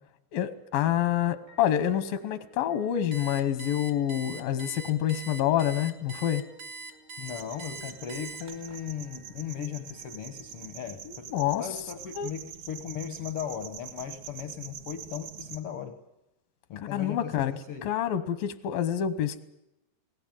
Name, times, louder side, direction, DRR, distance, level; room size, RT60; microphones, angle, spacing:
voice 1, 0.3-6.4 11.1-11.6 12.2-12.3 16.8-17.5 17.8-19.4, left 11 dB, 85° left, 13 dB, 2.8 m, -27 dB
sound 1, 1.5-11.5, right 2 dB, 85° right, 5.7 m, -57 dB
Alarm, 3.1-8.8, right 3 dB, 50° right, 1.9 m, -42 dB
voice 2, 7.2-16.0 16.7-17.9, left 8 dB, 65° left, 7 dB, 1.4 m, -37 dB
sound 2, 7.3-15.6, right 8 dB, 70° right, 2.7 m, -45 dB
21.0 x 17.5 x 9.1 m, 0.89 s
omnidirectional pair, 4.0 m